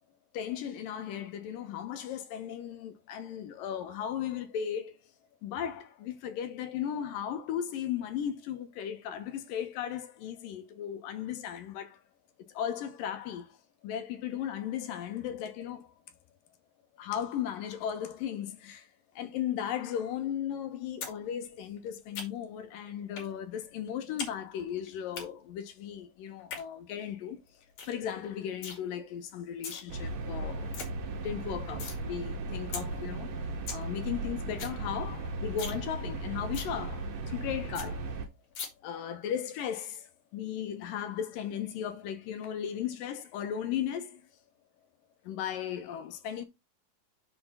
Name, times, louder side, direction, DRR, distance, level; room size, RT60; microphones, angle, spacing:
voice 1, 0.3-5.0 5.4-12.0 12.5-13.5 13.8-15.9 17.0-18.9 19.2-27.4 27.9-30.8 31.1-38.1 38.8-44.3 45.2-46.4, left 9 dB, 80° left, 2.7 m, -36 dB
sound 1, 21.0-21.2 21.5-22.6 23.2-23.3 23.6-24.3 24.6-25.2 26.3-26.6 27.1-27.2 27.5-27.6 27.8-28.0 28.3-28.8 29.4-29.8 30.2-30.3 30.5-30.9 31.2-32.0 32.3-32.4 32.7-32.8 33.2-33.3 33.5-33.8 34.2-34.3 34.5-34.8 35.1-35.2 35.5-35.8 36.1-36.2 36.5-36.7 37.1-37.2 37.4-37.5 37.7-37.9 38.5-38.7, left 5 dB, 55° left, 3.2 m, -39 dB
sound 2, 29.9-38.3, right 2 dB, 70° right, 3.0 m, -36 dB
6.8 x 4.2 x 5.6 m
omnidirectional pair, 4.0 m